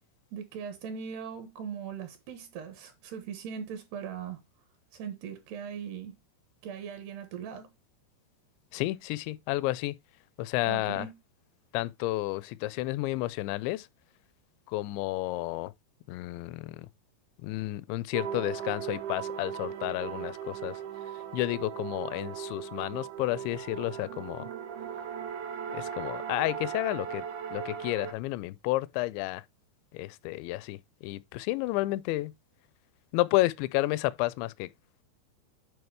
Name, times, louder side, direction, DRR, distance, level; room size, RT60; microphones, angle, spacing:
voice 1, 0.3-4.4 4.9-6.2 6.6-7.7 10.6-11.2, right 7 dB, 70° right, 3.1 m, -39 dB
voice 2, 8.7-10.0 10.4-11.1 11.7-13.9 14.7-15.7 16.1-16.9 17.4-20.8 21.3-24.5 25.7-27.2 27.5-29.4 29.9-32.3 33.1-34.7, left 18 dB, 85° left, 2.8 m, -31 dB
sound 1, 18.1-28.1, right 8 dB, 90° right, 1.7 m, -38 dB
9.6 x 4.7 x 3.3 m
omnidirectional pair, 5.3 m